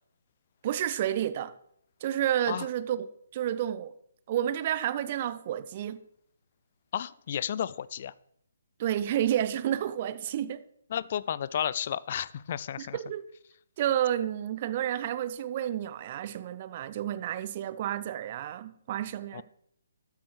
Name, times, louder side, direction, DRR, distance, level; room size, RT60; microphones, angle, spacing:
voice 1, 0.6-1.5 2.0-3.9 4.3-6.0 8.8-10.6 12.8-13.3 13.8-19.4, right 11 dB, 35° right, 0.5 m, -30 dB
voice 2, 6.9-8.1 10.9-13.0 19.3-19.4, left 9 dB, 40° left, 0.3 m, -32 dB
13.0 x 8.3 x 3.2 m
figure-of-eight pair, 135°, 0 cm